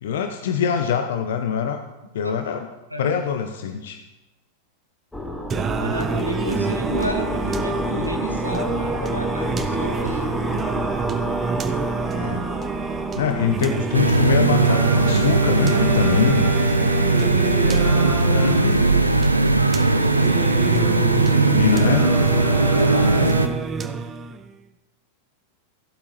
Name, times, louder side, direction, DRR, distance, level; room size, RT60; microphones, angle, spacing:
voice 1, 0.0-1.8 2.1-2.7 3.0-4.0 12.0-12.4 13.2-16.5 18.3-18.8 21.3-22.0, left 8 dB, 60° left, 7 dB, 0.6 m, -24 dB
sound 1, 5.1-17.6, left 1 dB, 5° left, 1.0 m, -31 dB
Singing, 5.5-24.5, right 5 dB, 25° right, 0.6 m, -27 dB
voice 2, 5.8-10.9 17.2-18.4 19.1-19.5 22.5-23.4, right 1 dB, 90° left, 3 dB, 1.2 m, -31 dB
sound 2, 13.9-23.5, right 3 dB, 85° right, 0.6 m, -19 dB
14.5 x 8.2 x 3.1 m, 1.0 s
figure-of-eight pair, 90°, 0 cm